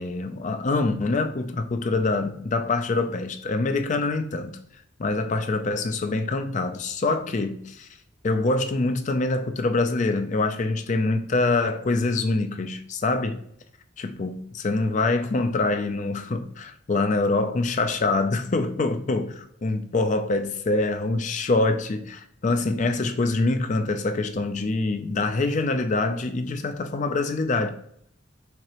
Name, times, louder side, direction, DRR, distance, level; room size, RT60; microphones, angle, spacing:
voice 1, 0.0-4.6 5.0-7.9 8.2-13.4 14.0-27.7, left 3 dB, 40° left, 0.4 m, -25 dB
4.5 x 2.9 x 3.0 m
head